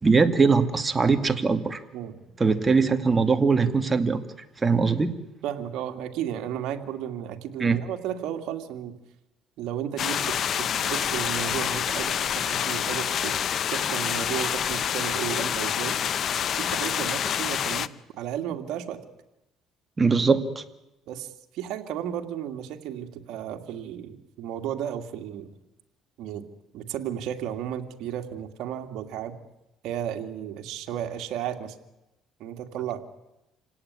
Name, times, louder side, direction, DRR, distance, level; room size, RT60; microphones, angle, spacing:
voice 1, 0.0-1.8 2.4-4.2 4.6-5.1 7.6-7.8 20.0-20.6, right 4 dB, 20° right, 7 dB, 2.0 m, -21 dB
voice 2, 1.9-2.2 5.4-8.9 9.6-13.3 13.7-16.0 16.5-17.9 18.2-19.0 21.1-25.5 26.2-26.4 26.7-29.3 29.8-31.8 32.4-33.0, right 10 dB, 75° right, 4 dB, 2.4 m, -33 dB
sound 1, 10.0-17.9, left 9 dB, 50° left, 0.8 m, -27 dB
27.5 x 17.5 x 9.8 m, 0.93 s
cardioid pair, 105°, 0 cm